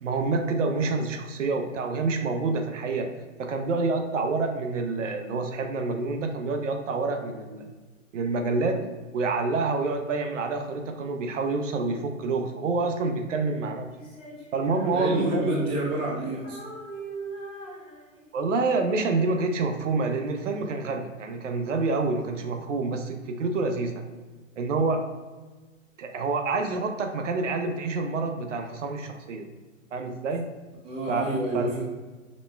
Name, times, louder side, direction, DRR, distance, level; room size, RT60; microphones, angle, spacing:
voice 1, 0.0-3.1 3.4-7.7 8.1-8.8 9.1-13.9 14.5-15.5 18.3-24.0 24.6-25.0 26.0-29.5 29.9-30.5 31.1-31.3 31.5-31.8, right 3 dB, 65° right, 5 dB, 0.7 m, -27 dB
Female singing, 13.9-16.1 16.4-18.5, right 3 dB, 15° left, 1.1 m, -41 dB
voice 2, 14.9-16.6 30.8-31.8, right 1 dB, 15° right, -3 dB, 0.5 m, -28 dB
5.2 x 2.1 x 3.2 m, 1.3 s
hypercardioid pair, 120°, 41 cm